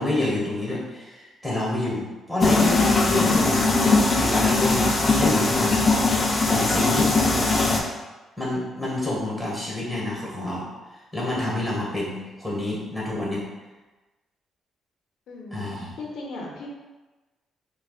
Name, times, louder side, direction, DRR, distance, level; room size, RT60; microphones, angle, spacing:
voice 1, 0.0-3.6 4.1-6.2 6.5-7.1 8.4-10.7 10.9-13.5 15.5-16.0, left 1 dB, 5° left, -5 dB, 1.4 m, -28 dB
sound 1, 2.4-7.8, left 3 dB, 30° left, 0.5 m, -20 dB
voice 2, 15.3-16.7, left 2 dB, 75° left, -1 dB, 0.8 m, -37 dB
4.6 x 2.3 x 2.4 m, 1.2 s
cardioid pair, 90°, 0 cm